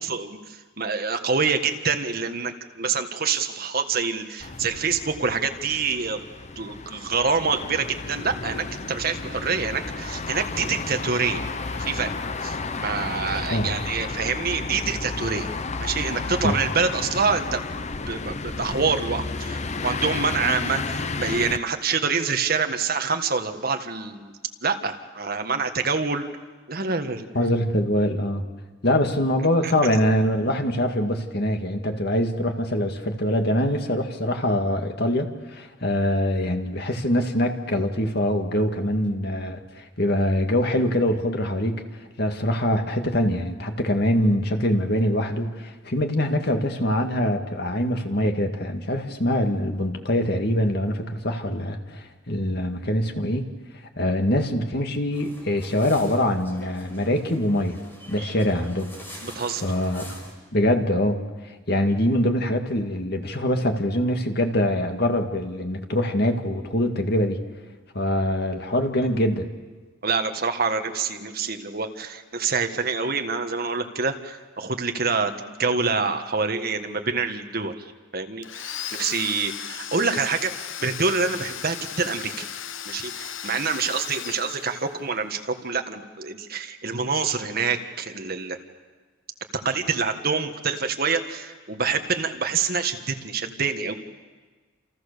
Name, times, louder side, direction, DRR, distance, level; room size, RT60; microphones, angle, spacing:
voice 1, 0.0-6.2 6.5-11.4 11.8-12.1 12.4-15.5 15.8-17.7 18.1-24.3 24.6-26.3 26.7-27.3 29.6-29.7 59.2-59.6 70.0-77.7 78.1-80.5 80.8-82.5 82.8-88.6 89.5-93.9, right 5 dB, 50° right, 6 dB, 1.7 m, -26 dB
sound 1, 4.4-21.6, left 3 dB, 35° left, 0.8 m, -32 dB
voice 2, 27.3-28.4 28.8-41.8 42.2-53.4 54.0-57.8 58.1-58.9 59.6-60.2 60.5-61.2 61.7-67.4 67.9-69.5, left 1 dB, 55° left, 5 dB, 2.2 m, -24 dB
sound 2, 55.1-60.3, equal, 10° left, 4.9 m, -43 dB
Domestic sounds home sounds, 78.4-85.2, left 9 dB, 75° left, 1.0 m, -36 dB
29.0 x 28.5 x 6.9 m, 1.4 s
head